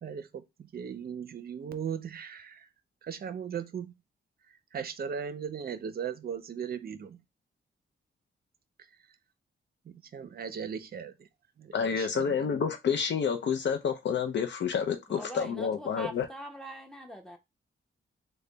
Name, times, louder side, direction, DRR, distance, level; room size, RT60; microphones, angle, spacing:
voice 1, 0.0-2.7 3.0-3.9 4.7-7.2 9.9-11.1 11.6-12.6, right 7 dB, 50° right, 0.5 m, -38 dB
voice 2, 11.7-16.3, left 7 dB, 60° left, 0.5 m, -29 dB
voice 3, 15.1-17.4, right 1 dB, ahead, 0.7 m, -43 dB
3.3 x 2.2 x 3.8 m
cardioid pair, 105°, 21 cm